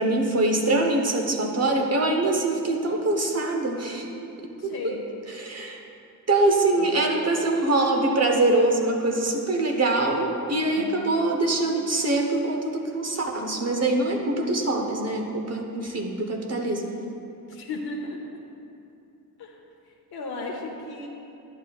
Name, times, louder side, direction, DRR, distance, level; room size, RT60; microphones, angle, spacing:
voice 1, 0.0-4.1 4.6-4.9 5.4-5.8 6.3-16.9, right 2 dB, 40° right, 1 dB, 1.0 m, -24 dB
voice 2, 4.6-5.0 6.7-7.0 10.8-11.1 17.5-18.4 19.4-19.6 19.8-21.1, left 2 dB, 70° left, -1 dB, 0.8 m, -36 dB
11.0 x 9.4 x 2.4 m, 2.7 s
wide cardioid pair, 115°, 39 cm